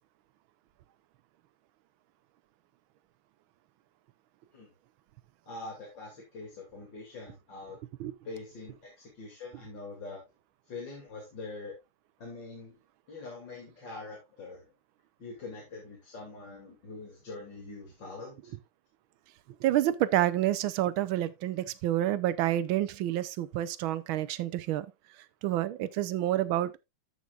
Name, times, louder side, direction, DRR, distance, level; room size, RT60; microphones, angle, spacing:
voice 1, 5.5-7.8 8.2-10.2 10.7-11.7 12.2-12.8 13.1-14.7 15.2-18.5, left 3 dB, 60° left, 3.3 m, -44 dB
voice 2, 19.6-24.9 25.4-26.8, right 13 dB, 75° right, 1.5 m, -28 dB
14.5 x 5.8 x 2.4 m
omnidirectional pair, 2.3 m